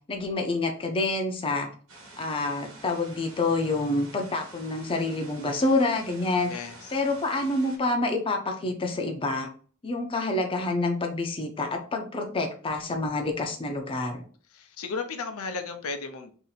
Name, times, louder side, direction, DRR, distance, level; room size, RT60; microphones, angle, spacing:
voice 1, 0.1-1.7 2.2-6.5 6.9-9.5 9.8-14.2, left 2 dB, 25° left, 3 dB, 0.5 m, -27 dB
sound 1, 1.9-7.8, right 2 dB, 60° right, 1.1 m, -48 dB
voice 2, 6.5-6.9 14.5-16.3, left 4 dB, 80° left, 6 dB, 0.6 m, -34 dB
2.7 x 2.5 x 3.9 m, 0.43 s
head